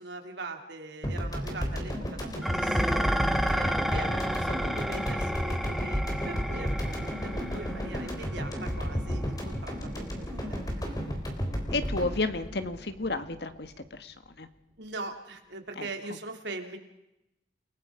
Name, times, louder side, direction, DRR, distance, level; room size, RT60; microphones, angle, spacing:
voice 1, 0.0-3.1 3.5-10.9 14.8-16.8, right 3 dB, 75° right, 4 dB, 3.4 m, -42 dB
sound 1, 1.0-13.5, equal, 20° left, 3.8 m, -32 dB
Dishes pots and pans, 2.4-11.2, equal, ahead, 1.0 m, -33 dB
voice 2, 11.7-14.5 15.8-15.9, left 3 dB, 60° left, 10 dB, 1.6 m, -32 dB
29.0 x 19.0 x 5.1 m, 0.88 s
head